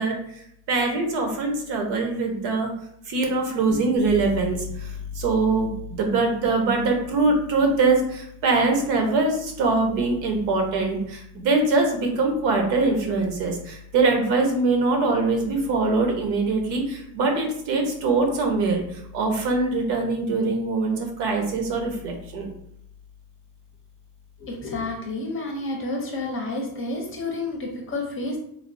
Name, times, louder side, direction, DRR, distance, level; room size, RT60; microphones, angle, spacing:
voice 1, 0.0-2.7 3.1-22.5, right 3 dB, 65° right, 3 dB, 0.9 m, -23 dB
voice 2, 24.4-28.4, left 2 dB, 30° left, 1 dB, 0.7 m, -30 dB
3.3 x 2.2 x 2.6 m, 0.69 s
supercardioid pair, 115°, 45 cm